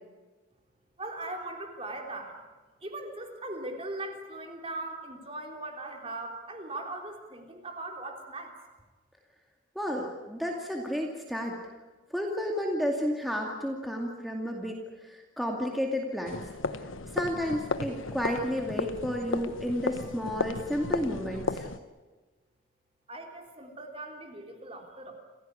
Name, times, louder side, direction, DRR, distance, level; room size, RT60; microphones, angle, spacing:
voice 1, 1.0-2.4 2.8-8.6 23.1-25.1, right 2 dB, 30° right, 3 dB, 3.5 m, -39 dB
voice 2, 9.8-11.6 12.1-16.4 16.7-16.8 17.1-21.7, equal, ahead, 0 dB, 2.3 m, -32 dB
sound 1, 16.3-21.8, left 3 dB, 85° left, 1.2 m, -34 dB
28.5 x 16.0 x 9.8 m, 1.3 s
head